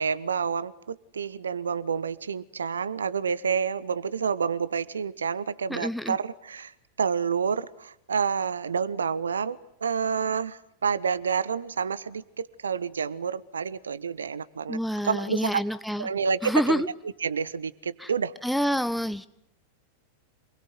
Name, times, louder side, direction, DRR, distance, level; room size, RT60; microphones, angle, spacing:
voice 1, 0.0-6.7 7.0-14.8 15.0-15.6 16.0-16.8 17.2-18.3, right 6 dB, 70° right, 17 dB, 1.1 m, -29 dB
voice 2, 5.7-6.2 14.7-16.1 16.4-16.9 18.0-18.1 18.4-19.3, equal, ahead, 13 dB, 1.0 m, -27 dB
27.5 x 21.0 x 8.0 m, 0.78 s
figure-of-eight pair, 90°, 0 cm